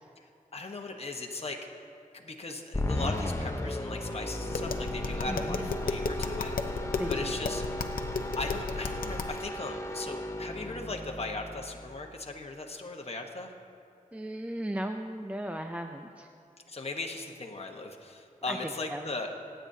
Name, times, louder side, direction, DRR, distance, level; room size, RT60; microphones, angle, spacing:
voice 1, 0.5-1.6 2.1-6.8 7.1-7.6 8.4-13.5 16.7-19.3, left 3 dB, 45° left, 2 dB, 1.1 m, -38 dB
sound 1, 2.7-12.1, left 1 dB, 20° left, 0.8 m, -36 dB
Tap, 4.4-9.4, left 4 dB, 85° left, 0.7 m, -34 dB
voice 2, 5.2-5.7 7.0-7.5 14.1-16.3 18.5-19.1, right 1 dB, 10° right, 5 dB, 0.4 m, -37 dB
25.5 x 9.0 x 2.7 m, 2.5 s
wide cardioid pair, 80°, 14 cm